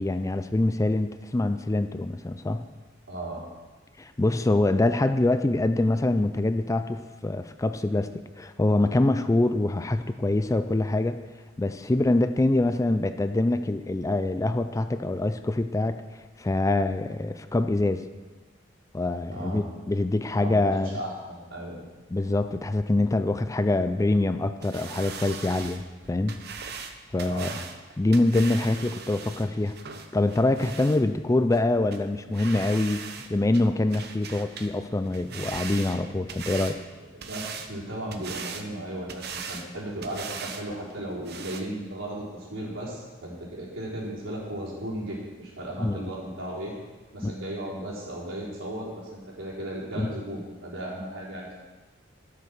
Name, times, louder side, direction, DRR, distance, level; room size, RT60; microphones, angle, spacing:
voice 1, 0.0-2.7 4.0-8.1 8.4-11.2 11.6-16.0 16.4-18.0 18.9-21.0 22.1-25.8 26.1-26.4 27.1-27.5 28.0-29.7 30.1-33.0 33.3-36.8 45.8-46.1 47.2-47.3 50.0-50.1, left 2 dB, 15° left, 10 dB, 0.4 m, -25 dB
voice 2, 3.1-3.4 19.3-19.6 20.4-21.8 27.2-27.6 37.1-46.7 47.1-51.5, right 1 dB, 80° right, -6 dB, 4.1 m, -35 dB
sound 1, 24.6-31.0 31.5-31.6 31.9-32.0 32.3-33.3 33.5-34.7 35.0-36.8 37.2-37.7 38.1-38.7 39.1-39.7 40.0-40.6 40.9-41.0 41.3-41.6, right 6 dB, 55° right, 0.9 m, -39 dB
12.0 x 6.9 x 6.5 m, 1.3 s
head